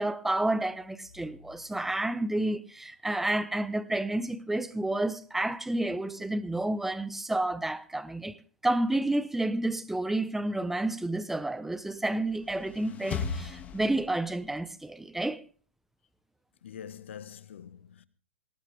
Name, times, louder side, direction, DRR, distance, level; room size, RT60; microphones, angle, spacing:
voice 1, 0.0-15.4, right 1 dB, 5° right, 1.0 m, -30 dB
sound 1, 12.2-14.5, left 6 dB, 25° left, 2.2 m, -37 dB
voice 2, 16.6-18.0, left 8 dB, 75° left, 1.5 m, -45 dB
19.0 x 18.0 x 3.5 m
hypercardioid pair, 130°, 7 cm